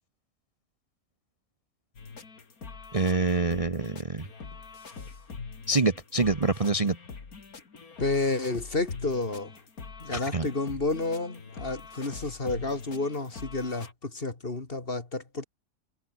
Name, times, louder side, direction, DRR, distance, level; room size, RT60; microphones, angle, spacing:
sound 1, 1.9-13.9, left 4 dB, 90° left, 3.0 m, -44 dB
voice 1, 2.9-4.3 5.7-7.0 10.1-10.5, right 3 dB, 25° right, 1.0 m, -26 dB
voice 2, 8.0-9.5 10.0-15.4, left 3 dB, 40° left, 2.7 m, -30 dB
omnidirectional pair, 1.5 m